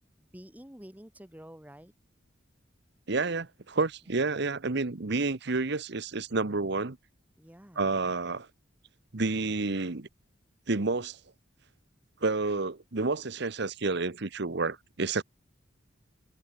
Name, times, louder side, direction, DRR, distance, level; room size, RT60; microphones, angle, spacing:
voice 1, 0.2-1.9 7.4-7.9, equal, 10° right, 2.5 m, -49 dB
voice 2, 3.1-7.0 7.8-8.5 9.1-10.1 10.7-11.2 12.2-15.2, right 3 dB, 60° right, 1.1 m, -29 dB
head